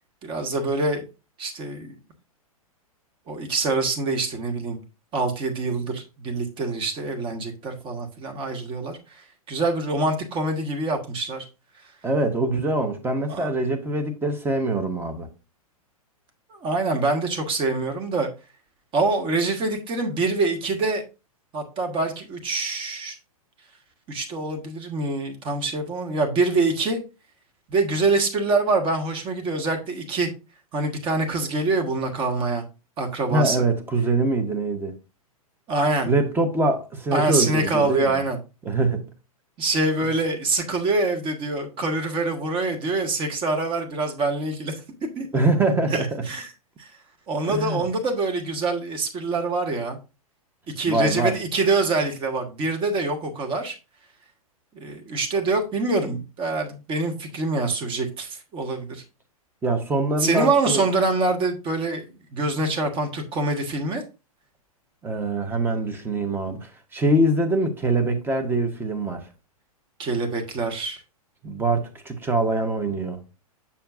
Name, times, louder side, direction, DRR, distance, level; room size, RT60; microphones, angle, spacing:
voice 1, 0.2-1.0 1.4-2.0 3.3-4.8 5.1-9.0 9.5-11.4 13.3-13.5 16.5-18.3 18.9-21.0 21.5-23.2 24.1-27.0 27.7-30.3 30.7-32.6 33.0-33.6 35.7-36.1 37.1-38.4 39.6-44.7 45.2-45.3 45.9-46.5 46.8-46.9 47.3-50.0 50.8-53.8 54.7-59.0 60.2-62.0 62.3-64.0 70.0-71.0, right 3 dB, 25° right, 1.4 m, -25 dB
voice 2, 12.0-15.3 33.3-34.9 36.1-38.2 38.6-39.1 45.3-46.2 47.5-47.8 50.8-51.4 59.6-60.9 65.0-69.2 71.4-73.2, right 2 dB, 10° right, 1.1 m, -23 dB
7.1 x 6.8 x 2.6 m
figure-of-eight pair, 110°, 19 cm